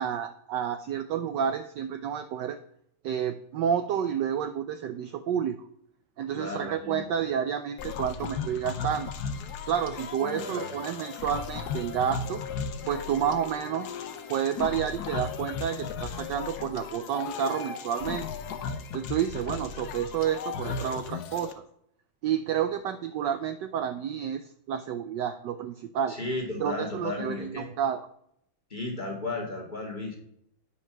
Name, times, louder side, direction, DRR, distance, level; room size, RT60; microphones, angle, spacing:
voice 1, 0.0-2.6 3.0-5.7 6.2-9.1 9.7-12.4 12.9-13.9 14.3-18.3 18.9-21.5 22.2-26.2 26.6-28.0, right 8 dB, 75° right, 10 dB, 1.0 m, -30 dB
voice 2, 6.3-7.0 10.2-10.7 26.1-27.7 28.7-30.2, left 2 dB, 20° left, -2 dB, 1.9 m, -34 dB
sound 1, 7.8-21.5, left 6 dB, 65° left, 1.1 m, -36 dB
9.7 x 5.4 x 5.8 m, 0.72 s
omnidirectional pair, 2.3 m